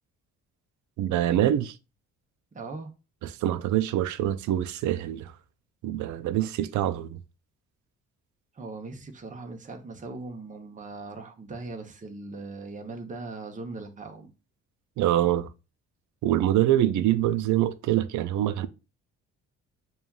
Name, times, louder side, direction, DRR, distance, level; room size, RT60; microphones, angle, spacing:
voice 1, 1.0-1.8 3.2-5.3 5.8-7.2 15.0-15.5 16.2-18.7, right 12 dB, 70° right, 0.5 m, -25 dB
voice 2, 2.5-2.9 8.5-14.3, right 3 dB, 25° right, 0.8 m, -39 dB
6.8 x 2.4 x 2.3 m
cardioid pair, 90°, 30 cm